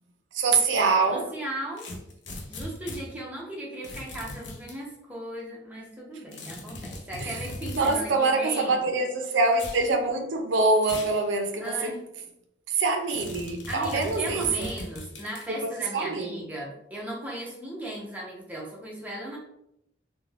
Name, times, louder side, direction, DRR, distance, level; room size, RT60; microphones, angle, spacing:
voice 1, 0.3-1.2 7.2-7.4 7.7-11.9 12.7-14.7 15.6-16.5, right 3 dB, 80° right, 5 dB, 0.5 m, -25 dB
voice 2, 1.1-1.9 2.5-8.8 11.6-12.1 13.7-19.4, right 1 dB, 10° right, -4 dB, 0.7 m, -37 dB
sound 1, 1.8-3.0 3.8-4.8 6.3-8.1 9.5-9.8 10.8-11.2 11.6-11.7 13.1-15.5, left 1 dB, 70° left, 0.5 m, -39 dB
2.4 x 2.2 x 3.2 m, 0.79 s
head